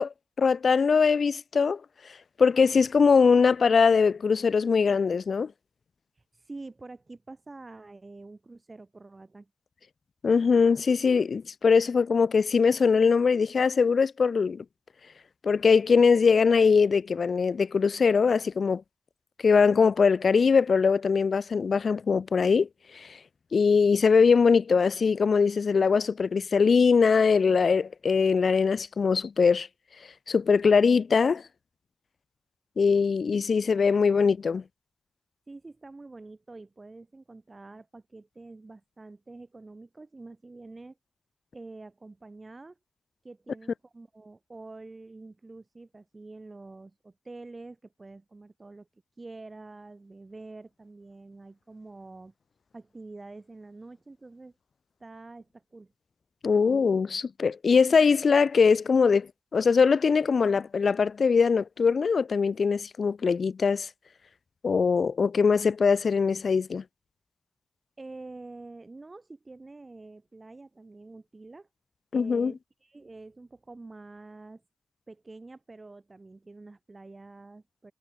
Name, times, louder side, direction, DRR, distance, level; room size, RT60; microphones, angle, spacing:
voice 1, 0.0-1.8 2.4-5.5 10.2-14.6 15.4-18.8 19.4-22.7 22.9-23.1 23.5-29.7 30.3-31.4 32.8-34.6 56.4-63.9 64.6-66.8 72.1-72.5, left 5 dB, 65° left, 0.3 m, -22 dB
voice 2, 6.2-9.5 35.5-41.0 41.5-42.8 43.2-48.9 49.2-52.3 52.7-54.5 55.0-55.9 68.0-71.7 72.1-74.6 75.1-77.9, right 3 dB, 35° right, 4.1 m, -46 dB
cardioid pair, 55°, 0 cm